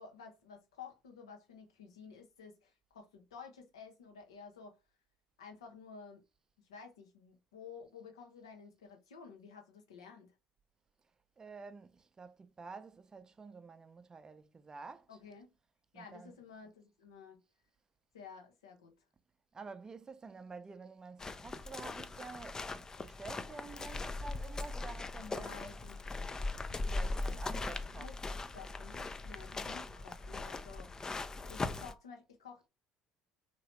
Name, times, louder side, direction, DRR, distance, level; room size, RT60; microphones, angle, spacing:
voice 1, 0.0-4.8 5.4-6.2 6.6-10.3 15.1-15.5 15.9-17.4 18.1-18.9 25.2-26.0 27.3-27.6 27.9-31.0 31.5-32.7, left 6 dB, 85° left, 0.9 m, -52 dB
voice 2, 11.4-15.2 15.9-16.4 19.5-25.8 26.8-28.4, right 4 dB, 25° right, 0.5 m, -50 dB
sound 1, 21.2-31.9, left 3 dB, 25° left, 0.4 m, -40 dB
3.0 x 2.9 x 2.9 m
hypercardioid pair, 65°, 3 cm